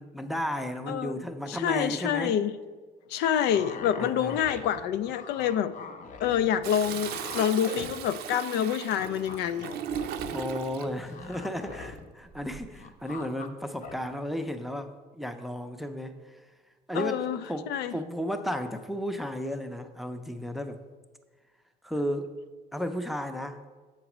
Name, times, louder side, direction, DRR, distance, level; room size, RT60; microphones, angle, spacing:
voice 1, 0.0-2.4 4.0-4.4 10.3-16.4 16.9-20.8 21.8-22.3 22.7-23.6, equal, ahead, 7 dB, 0.5 m, -34 dB
voice 2, 0.9-1.2 1.5-2.5 3.1-5.7 6.2-9.7 16.9-17.4 17.7-17.9, left 9 dB, 80° left, 13 dB, 0.4 m, -27 dB
sound 1, 3.5-8.3 8.6-12.1 12.3-13.5 13.8-14.0, left 5 dB, 50° left, 0.7 m, -43 dB
Toilet flush, 6.6-10.9 12.3-12.8, right 8 dB, 75° right, 0.5 m, -37 dB
7.7 x 4.0 x 5.9 m, 1.4 s
cardioid pair, 110°, 17 cm